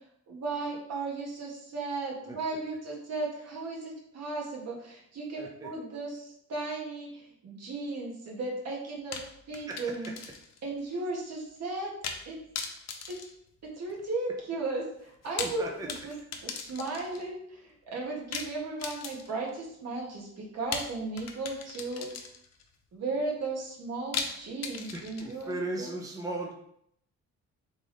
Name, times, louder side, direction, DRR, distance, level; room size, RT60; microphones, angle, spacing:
voice 1, 0.3-9.2 9.5-10.1 10.6-11.9 12.2-12.4 13.1-13.2 13.8-16.1 16.4-22.2 22.9-25.9, right 3 dB, 55° right, -3 dB, 1.6 m, -35 dB
voice 2, 5.4-5.7 9.7-9.9 15.4-15.9 24.8-26.5, right 2 dB, 10° right, 0 dB, 0.6 m, -37 dB
sound 1, 9.1-10.6 10.9-11.0 12.0-12.3 12.6-14.1 15.1-17.3 18.3-19.5 20.7-22.6 24.1-25.5, left 6 dB, 60° left, 0.7 m, -38 dB
3.7 x 3.5 x 3.9 m, 0.72 s
cardioid pair, 90°, 30 cm